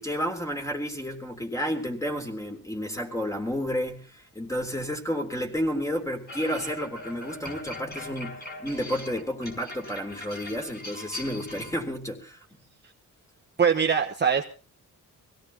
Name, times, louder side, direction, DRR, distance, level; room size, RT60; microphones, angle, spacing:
voice 1, 0.0-12.4, equal, 10° left, 4 dB, 3.6 m, -31 dB
sound 1, 6.3-11.7, left 2 dB, 30° left, 5.3 m, -41 dB
voice 2, 13.6-14.4, right 6 dB, 30° right, 2 dB, 1.1 m, -22 dB
25.0 x 17.0 x 2.9 m, 0.35 s
cardioid pair, 115°, 34 cm